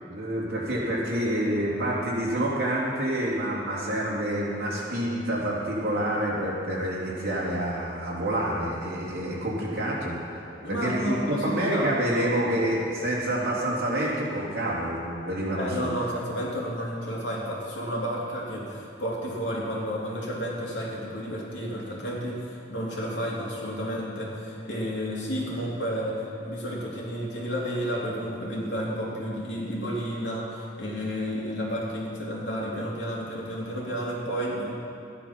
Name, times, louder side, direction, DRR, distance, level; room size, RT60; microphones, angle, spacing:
voice 1, 0.1-15.9, right 1 dB, 55° right, -5 dB, 3.3 m, -28 dB
voice 2, 10.6-12.3 15.6-34.7, equal, 75° left, -4 dB, 2.9 m, -31 dB
14.0 x 10.0 x 6.0 m, 2.7 s
head